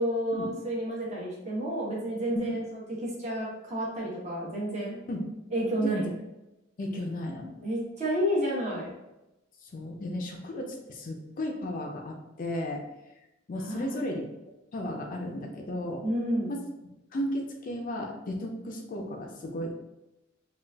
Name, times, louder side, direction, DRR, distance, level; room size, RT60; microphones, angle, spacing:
voice 1, 0.0-2.6 3.0-5.0 5.5-6.1 7.6-8.9 13.5-14.0 16.0-16.5, equal, 35° right, -4 dB, 0.9 m, -30 dB
voice 2, 5.8-6.1 6.8-7.5 9.6-12.8 13.5-14.3 14.7-16.0 16.5-16.6 17.1-19.7, left 1 dB, 40° left, 2 dB, 0.4 m, -34 dB
3.8 x 2.4 x 2.3 m, 0.95 s
head